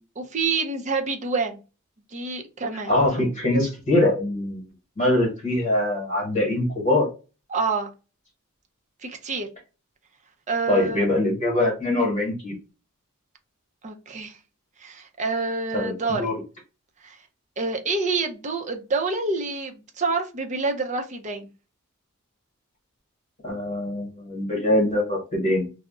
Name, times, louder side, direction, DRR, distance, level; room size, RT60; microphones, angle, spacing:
voice 1, 0.2-1.6 2.1-2.9 7.5-7.9 9.0-9.5 10.5-11.1 13.8-14.4 14.8-16.3 17.0-17.2 17.6-21.5, right 4 dB, 35° right, 0.5 m, -27 dB
voice 2, 2.9-4.6 5.0-7.1 10.7-12.6 15.7-16.3 23.4-25.7, left 1 dB, 35° left, 1.1 m, -23 dB
2.4 x 2.0 x 3.6 m
head